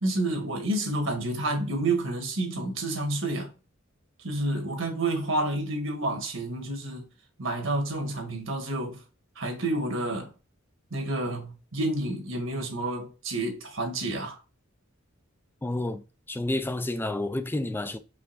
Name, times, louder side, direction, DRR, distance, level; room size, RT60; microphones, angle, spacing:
voice 1, 0.0-3.5 4.2-7.1 7.4-9.0 9.4-10.3 10.9-14.4, right 2 dB, 70° right, 1.5 m, -29 dB
voice 2, 15.6-18.0, left 1 dB, 10° left, 0.4 m, -30 dB
5.0 x 3.6 x 2.4 m
head